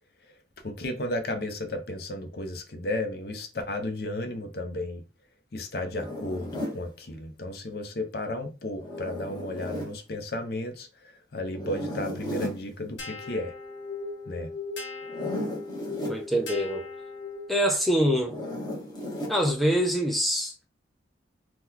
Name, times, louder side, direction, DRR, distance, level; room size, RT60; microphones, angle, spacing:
voice 1, 0.6-5.0 5.5-13.6 14.3-14.5, left 1 dB, 55° left, 0.6 m, -33 dB
Zipper (clothing), 5.9-6.8 8.8-9.9 11.5-12.6 15.0-16.2 18.2-19.4, left 1 dB, 20° left, 0.8 m, -34 dB
sound 1, 13.0-17.8, left 3 dB, 85° left, 0.9 m, -38 dB
voice 2, 16.1-16.9 17.5-18.4 19.3-20.7, equal, ahead, 0.3 m, -25 dB
3.0 x 2.1 x 3.7 m
head